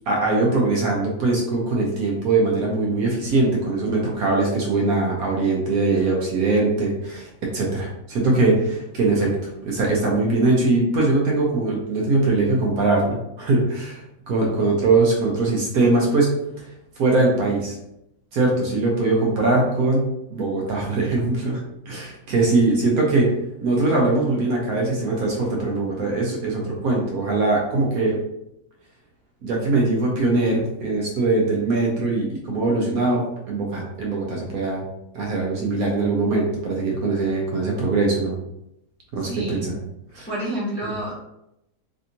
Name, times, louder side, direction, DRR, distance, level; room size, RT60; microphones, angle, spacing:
voice 1, 0.1-7.3 7.5-9.3 9.6-16.6 17.0-17.8 18.3-21.6 21.9-23.3 23.6-28.2 29.4-34.8 35.1-38.3 39.1-39.7 40.1-40.3 40.8-40.9, right 3 dB, 65° right, -2 dB, 1.1 m, -21 dB
voice 2, 39.2-39.7 40.3-41.3, right 1 dB, 10° left, -8 dB, 0.7 m, -29 dB
3.4 x 2.7 x 2.6 m, 0.83 s
omnidirectional pair, 1.8 m